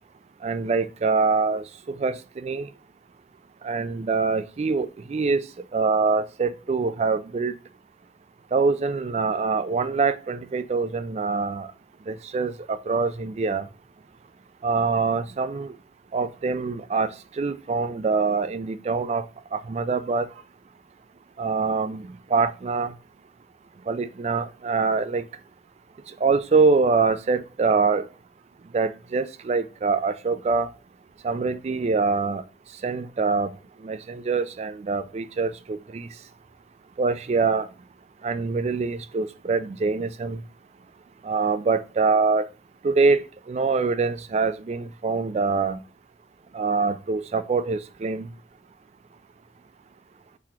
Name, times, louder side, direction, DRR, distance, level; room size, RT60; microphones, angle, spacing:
voice 1, 0.4-2.7 3.6-5.4 5.7-7.5 8.5-11.7 12.1-13.7 14.6-15.7 16.1-19.3 19.5-20.3 21.4-22.9 23.9-25.2 26.2-28.1 28.7-30.7 31.2-32.4 32.8-33.5 33.8-36.1 37.0-37.7 38.2-40.4 41.2-42.5 42.8-45.8 46.5-48.3, right 4 dB, 40° right, 0.3 m, -24 dB
4.4 x 4.0 x 2.8 m
head